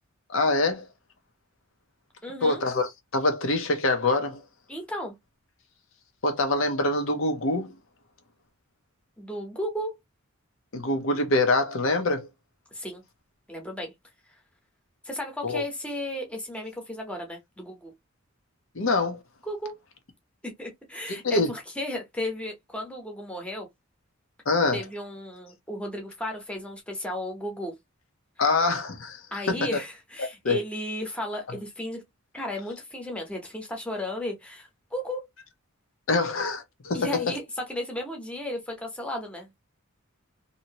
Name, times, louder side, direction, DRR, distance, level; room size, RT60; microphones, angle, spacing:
voice 1, 0.3-0.9 2.4-4.4 6.2-7.7 10.7-12.3 15.4-15.6 18.7-19.2 21.1-21.5 24.5-24.8 28.4-29.2 29.5-29.7 30.2-30.6 36.1-37.3, left 2 dB, 65° left, 0.8 m, -25 dB
voice 2, 2.2-2.6 4.7-5.1 9.2-10.0 12.7-13.0 13.5-13.9 15.0-17.9 19.4-19.8 20.6-23.7 24.7-27.7 29.3-32.0 32.3-35.3 36.9-39.6, left 1 dB, 5° left, 0.9 m, -34 dB
2.8 x 2.7 x 2.8 m
head